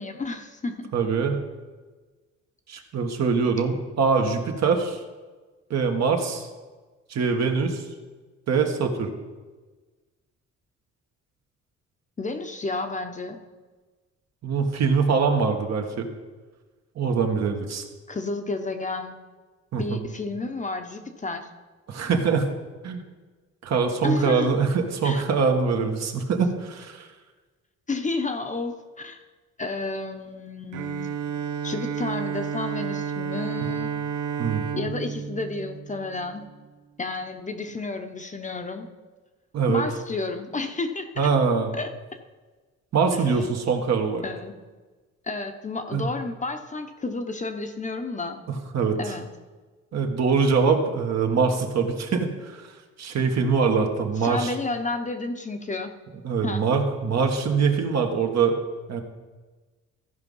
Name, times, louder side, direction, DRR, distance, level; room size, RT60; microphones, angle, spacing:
voice 1, 0.0-0.9 12.2-13.4 18.1-19.2 19.8-21.5 24.0-24.6 25.0-25.2 27.9-29.2 29.6-31.2 31.6-33.9 34.7-36.4 37.0-38.9 39.7-41.3 41.7-41.9 43.1-43.2 44.2-44.5 45.2-48.4 49.0-49.3 54.2-55.9 56.4-56.7, left 3 dB, 25° left, 6 dB, 0.9 m, -31 dB
voice 2, 0.9-1.4 2.7-5.0 5.7-6.5 7.1-7.8 8.5-9.1 14.4-16.1 16.9-17.8 19.7-20.0 21.9-22.5 22.8-23.0 23.6-27.1 34.4-34.6 39.5-39.8 41.2-41.7 42.9-44.2 45.9-46.1 48.5-49.1 49.9-52.6 53.0-54.5 56.2-58.6 58.9-59.0, right 5 dB, 60° right, 4 dB, 1.5 m, -23 dB
Bowed string instrument, 30.7-36.6, right 7 dB, 80° right, 0.7 m, -31 dB
14.5 x 5.0 x 5.5 m, 1.3 s
cardioid pair, 90°, 30 cm